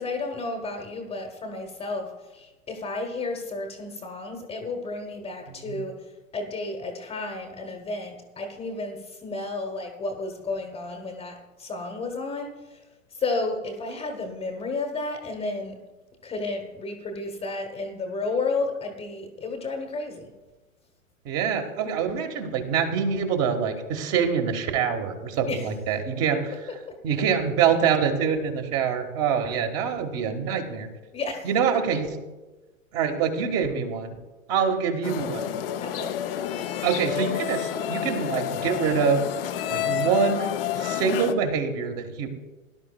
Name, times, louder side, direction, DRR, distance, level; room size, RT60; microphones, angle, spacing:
voice 1, 0.0-6.0 6.3-12.8 13.1-15.8 16.2-20.3 25.4-25.7 26.9-27.0 31.1-31.5 35.8-36.1, left 3 dB, 15° left, 4 dB, 1.2 m, -32 dB
voice 2, 21.2-26.4 27.0-30.9 31.4-32.1 32.9-34.1 34.5-35.5 36.8-39.2 39.7-42.3, right 7 dB, 30° right, 5 dB, 1.6 m, -25 dB
sound 1, 35.0-41.3, left 10 dB, 45° left, 0.8 m, -29 dB
17.5 x 11.5 x 2.3 m, 1.1 s
figure-of-eight pair, 105°, 41 cm